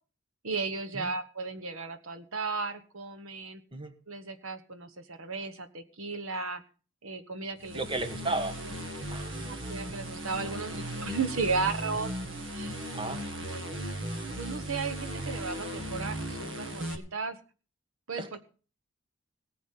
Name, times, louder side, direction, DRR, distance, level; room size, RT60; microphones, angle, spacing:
voice 1, 0.4-3.6 4.1-6.6 7.0-7.8 9.4-12.1 12.5-12.8 13.4-13.7 14.3-17.4 18.1-18.2, right 4 dB, 85° right, 9 dB, 1.4 m, -35 dB
sound 1, 7.6-17.0, right 1 dB, 65° right, 1.9 m, -37 dB
voice 2, 7.7-8.6 9.1-9.7 12.9-13.3 18.2-18.4, right 2 dB, 25° right, 10 dB, 1.3 m, -34 dB
18.0 x 8.5 x 5.7 m, 0.38 s
head